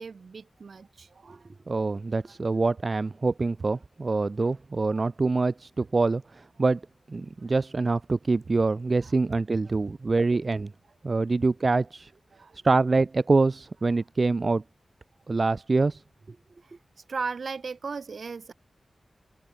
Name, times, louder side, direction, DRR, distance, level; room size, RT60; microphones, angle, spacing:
voice 1, 0.0-1.5 4.9-5.1 9.7-9.8 12.3-12.6 16.6-16.7 17.1-18.5, right 5 dB, 65° right, 2.7 m, -37 dB
voice 2, 1.7-6.8 7.1-10.7 11.0-12.1 12.6-14.6 15.3-16.0, right 3 dB, 40° right, 0.9 m, -25 dB
wide cardioid pair, 110°, 0 cm